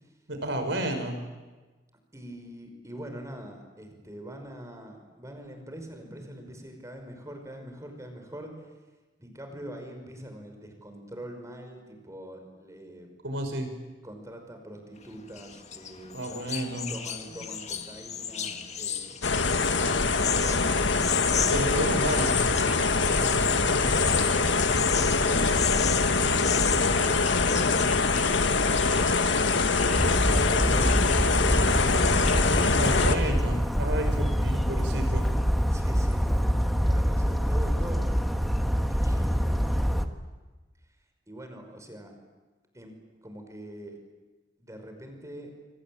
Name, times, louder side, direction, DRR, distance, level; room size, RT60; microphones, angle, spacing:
voice 1, 0.3-1.2 13.2-13.7 16.1-16.9 21.5-22.4 32.8-35.3, right 1 dB, 70° right, 6 dB, 5.7 m, -31 dB
voice 2, 2.1-8.5 9.2-13.1 14.0-16.4 16.9-19.3 20.0-20.7 21.3-21.6 22.6-26.0 26.5-33.3 35.7-38.2 38.9-40.1 41.3-42.1 42.7-42.9 43.2-44.0 44.6-45.5, right 1 dB, 15° right, 5 dB, 5.6 m, -43 dB
sound 1, 15.0-33.3, left 8 dB, 40° left, 2.0 m, -35 dB
sound 2, 19.2-33.1, left 4 dB, 70° left, 1.7 m, -24 dB
Bird vocalization bird call bird song, 29.9-40.0, equal, ahead, 1.6 m, -25 dB
27.0 x 24.5 x 8.9 m, 1.2 s
head